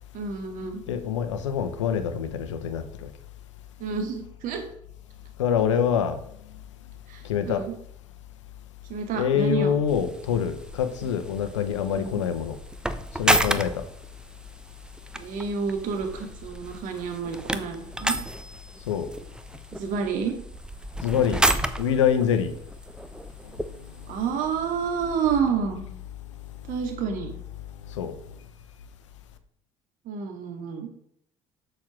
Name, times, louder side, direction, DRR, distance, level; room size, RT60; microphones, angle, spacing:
voice 1, 0.1-0.8 3.8-4.7 7.1-7.7 8.9-9.8 12.0-12.2 15.1-18.2 19.7-20.4 24.1-25.8 26.7-27.3 30.1-30.9, right 6 dB, 60° right, 4 dB, 2.3 m, -29 dB
voice 2, 0.9-2.8 5.4-6.2 7.2-7.6 9.1-12.6 13.2-13.8 18.9-19.1 21.0-21.4 21.8-22.5 28.0-28.1, left 8 dB, 90° left, 10 dB, 1.0 m, -25 dB
sound 1, 9.9-25.4, right 1 dB, 5° right, 1.0 m, -32 dB
7.3 x 6.4 x 6.0 m, 0.69 s
hypercardioid pair, 65°, 15 cm